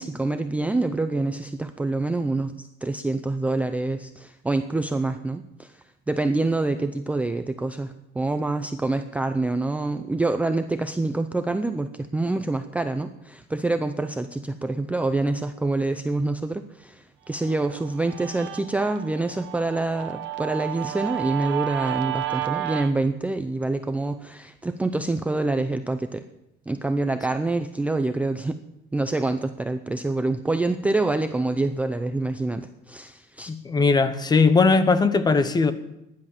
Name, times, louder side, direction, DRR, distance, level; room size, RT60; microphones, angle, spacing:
voice 1, 0.0-5.7 6.1-26.2 26.7-28.6 28.9-33.5, right 2 dB, 5° right, 0.5 m, -26 dB
Guitar, 17.4-22.9, right 14 dB, 60° right, 1.2 m, -32 dB
voice 2, 33.5-35.7, left 4 dB, 20° left, 1.0 m, -19 dB
15.0 x 11.0 x 7.4 m
cardioid pair, 160°, 21 cm